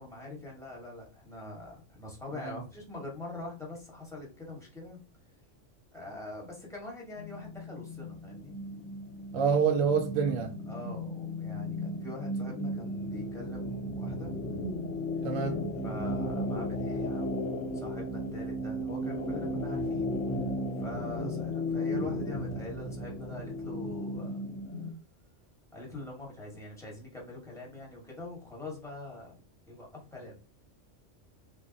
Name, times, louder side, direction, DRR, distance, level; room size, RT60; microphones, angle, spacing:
voice 1, 0.0-5.0 5.9-8.6 10.7-14.4 15.8-20.1 20.8-24.4 25.7-29.3 29.7-30.4, left 2 dB, 5° left, 1.1 m, -43 dB
sound 1, 7.2-24.9, left 1 dB, 85° left, 1.0 m, -35 dB
voice 2, 9.3-10.5 15.2-15.6 21.2-21.3, right 6 dB, 65° right, 0.8 m, -26 dB
3.2 x 2.2 x 3.8 m
omnidirectional pair, 1.3 m